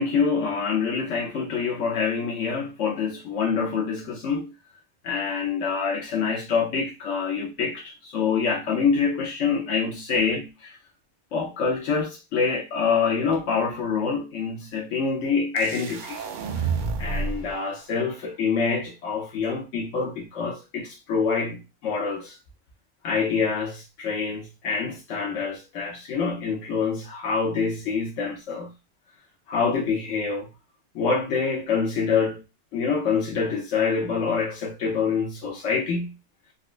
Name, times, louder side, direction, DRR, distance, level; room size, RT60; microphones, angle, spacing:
voice 1, 0.0-4.5 5.0-10.8 11.3-16.2 16.6-16.7 17.0-22.3 23.0-28.7 29.5-30.5 30.9-32.4 32.7-36.1, left 5 dB, 75° left, 1.1 m, -26 dB
sound 1, 15.6-17.5, right 5 dB, 65° right, 0.5 m, -29 dB
4.0 x 2.1 x 2.4 m
omnidirectional pair, 1.3 m